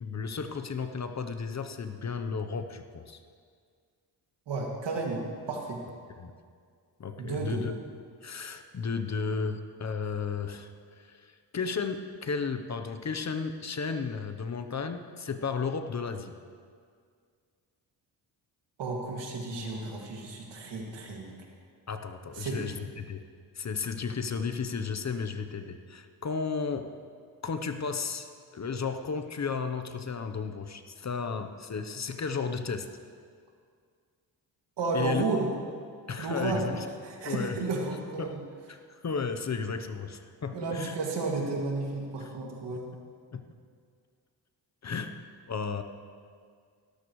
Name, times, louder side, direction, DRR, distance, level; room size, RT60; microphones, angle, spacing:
voice 1, 0.0-3.2 6.2-6.3 7.0-7.7 8.2-16.3 21.9-23.2 23.5-26.9 27.4-32.9 34.9-35.2 36.1-36.9 37.2-37.6 38.2-38.4 38.7-41.0 42.2-42.3 43.3-43.4 44.8-45.8, left 5 dB, 40° left, 7 dB, 0.9 m, -34 dB
voice 2, 4.5-5.8 7.2-7.6 18.8-21.3 22.4-22.6 34.8-35.5 36.2-36.7 37.0-38.4 40.5-42.9, right 3 dB, 75° right, -1 dB, 2.5 m, -32 dB
17.0 x 13.5 x 3.2 m, 2.1 s
cardioid pair, 65°, 42 cm